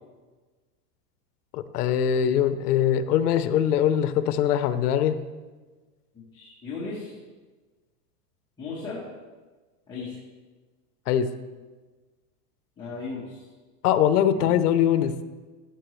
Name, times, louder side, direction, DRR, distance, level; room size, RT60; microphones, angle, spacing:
voice 1, 1.5-5.2 11.1-11.3 13.8-15.1, left 9 dB, 70° left, 12 dB, 0.8 m, -22 dB
voice 2, 6.1-7.2 8.6-9.0 9.9-10.1 12.8-13.4 14.3-14.5, left 4 dB, 10° left, -9 dB, 1.2 m, -36 dB
14.0 x 6.8 x 3.2 m, 1.3 s
supercardioid pair, 170°, 47 cm